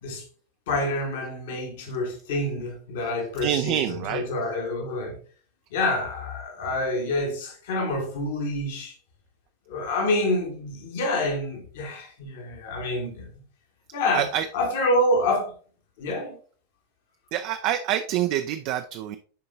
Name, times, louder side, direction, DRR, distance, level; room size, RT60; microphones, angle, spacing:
voice 1, 0.7-5.2 5.7-9.0 9.7-13.3 13.9-14.3 14.5-15.5 16.0-16.4, left 1 dB, 55° left, 1.5 m, -27 dB
voice 2, 3.4-4.2 14.1-14.5 17.3-19.2, right 11 dB, 45° right, 0.4 m, -26 dB
10.0 x 3.7 x 2.6 m
figure-of-eight pair, 90°, 0 cm